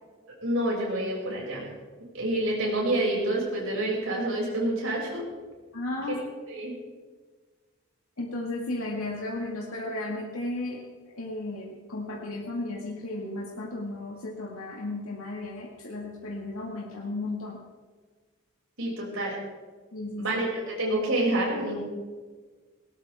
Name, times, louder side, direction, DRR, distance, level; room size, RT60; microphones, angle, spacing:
voice 1, 0.4-1.6 2.1-5.2 6.5-6.7 18.8-19.3 20.2-21.8, right 1 dB, 75° right, -3 dB, 6.5 m, -28 dB
voice 2, 5.7-6.2 8.2-10.8 11.1-17.6 19.9-20.3, left 2 dB, 85° left, -2 dB, 2.0 m, -34 dB
19.5 x 18.0 x 3.6 m, 1.4 s
head